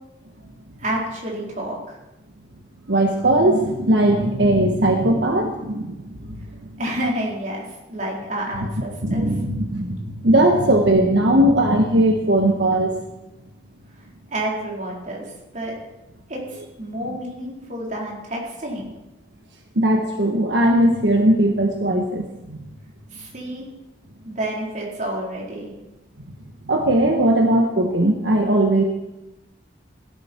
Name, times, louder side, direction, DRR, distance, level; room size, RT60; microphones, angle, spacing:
voice 1, 0.8-2.0 6.8-9.3 14.3-15.2 15.5-15.7 16.3-18.9 23.1-23.6 24.2-25.7, right 1 dB, 40° right, -3 dB, 4.1 m, -29 dB
voice 2, 2.9-6.2 9.0-12.9 19.7-22.6 26.7-28.8, right 1 dB, 80° right, 3 dB, 1.4 m, -18 dB
17.0 x 12.0 x 4.5 m, 0.98 s
head